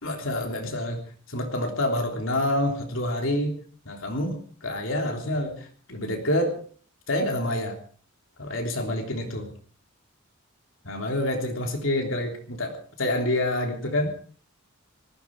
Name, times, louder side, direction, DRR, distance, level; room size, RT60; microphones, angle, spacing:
voice 1, 0.0-3.6 3.8-6.6 7.1-7.8 8.4-9.5 10.8-14.1, left 1 dB, 65° left, 3 dB, 3.3 m, -27 dB
19.5 x 15.0 x 4.7 m, 0.43 s
head